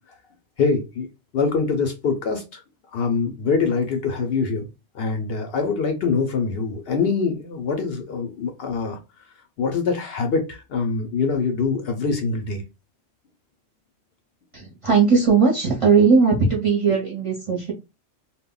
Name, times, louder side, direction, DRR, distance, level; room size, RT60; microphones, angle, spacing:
voice 1, 0.6-1.1 1.3-2.6 2.9-4.7 4.9-9.0 9.6-12.6, left 4 dB, 65° left, 0.7 m, -24 dB
voice 2, 14.5-17.7, right 5 dB, 35° right, 0.6 m, -18 dB
2.1 x 2.1 x 3.6 m
omnidirectional pair, 1.2 m